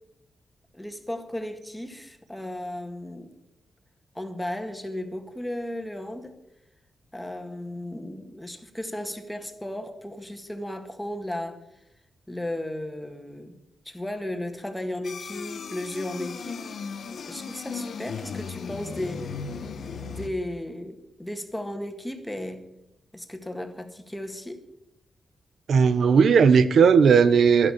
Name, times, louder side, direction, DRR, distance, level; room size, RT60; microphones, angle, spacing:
voice 1, 0.7-3.3 4.2-6.3 7.1-11.6 12.3-13.6 13.9-16.6 17.3-19.3 20.1-22.6 23.1-24.6, left 1 dB, 5° left, 1.8 m, -35 dB
sound 1, 15.0-20.3, left 5 dB, 65° left, 1.1 m, -36 dB
voice 2, 25.7-27.7, right 6 dB, 70° right, 0.9 m, -17 dB
12.0 x 11.0 x 8.6 m
cardioid pair, 105°, 0 cm